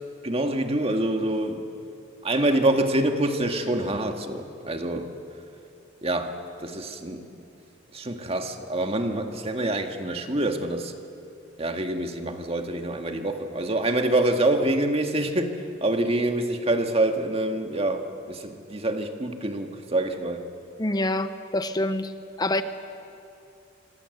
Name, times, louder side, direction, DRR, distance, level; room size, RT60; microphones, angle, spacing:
voice 1, 0.2-1.7 2.2-5.1 6.0-7.2 7.9-10.9 11.6-20.5, right 1 dB, 30° right, 5 dB, 1.9 m, -26 dB
voice 2, 20.8-22.1 22.4-22.6, left 1 dB, 20° left, 10 dB, 0.9 m, -26 dB
26.0 x 25.5 x 8.0 m, 2.7 s
head